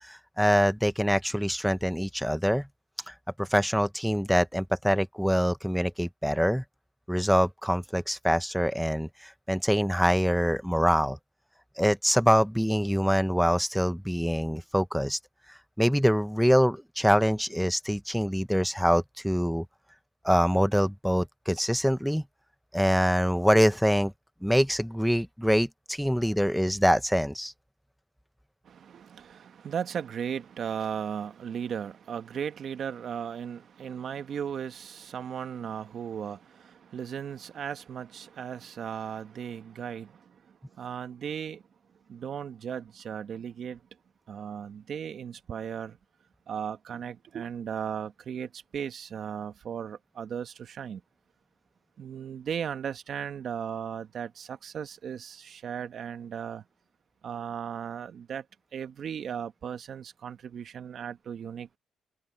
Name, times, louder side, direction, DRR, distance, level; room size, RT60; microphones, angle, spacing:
voice 1, 0.0-2.7 3.1-6.6 7.1-11.2 11.8-15.2 15.5-19.6 20.2-22.2 22.7-24.1 24.4-27.5, equal, ahead, 0.9 m, -25 dB
voice 2, 28.6-41.6 42.1-43.8 44.3-46.0 46.5-51.0 52.0-56.6 57.2-58.4 58.7-61.8, right 8 dB, 60° right, 1.3 m, -36 dB
cardioid pair, 90°, 0 cm